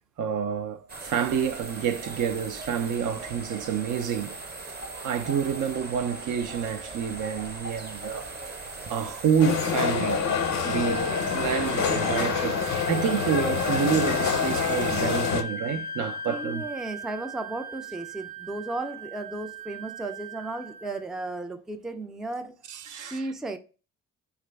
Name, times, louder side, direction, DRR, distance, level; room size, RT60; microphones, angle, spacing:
voice 1, 0.2-4.4 5.0-8.3 8.9-10.2 10.6-16.6 22.7-23.3, right 7 dB, 75° right, 0.5 m, -28 dB
sound 1, 0.9-15.4, right 3 dB, 30° right, 0.6 m, -39 dB
sound 2, 9.4-15.4, left 6 dB, 60° left, 0.6 m, -26 dB
Wind instrument woodwind instrument, 10.6-21.0, right 3 dB, 90° right, 1.0 m, -38 dB
voice 2, 10.8-11.3 16.3-22.5 23.0-23.6, right 2 dB, ahead, 0.3 m, -35 dB
3.1 x 2.4 x 3.3 m
cardioid pair, 80°, 31 cm